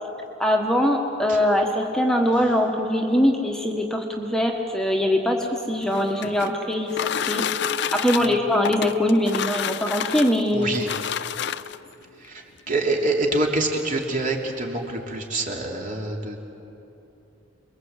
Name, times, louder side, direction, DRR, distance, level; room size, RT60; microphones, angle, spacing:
voice 1, 0.4-6.9 7.2-7.4 7.9-10.7, left 1 dB, 5° left, 1 dB, 1.4 m, -22 dB
sound 1, 5.7-11.9 12.8-12.9 13.3-13.4 13.7-14.1, left 8 dB, 60° left, 0.6 m, -29 dB
voice 2, 10.5-10.9 12.2-16.4, right 2 dB, 45° right, 0 dB, 3.3 m, -26 dB
28.0 x 21.5 x 8.2 m, 2.9 s
head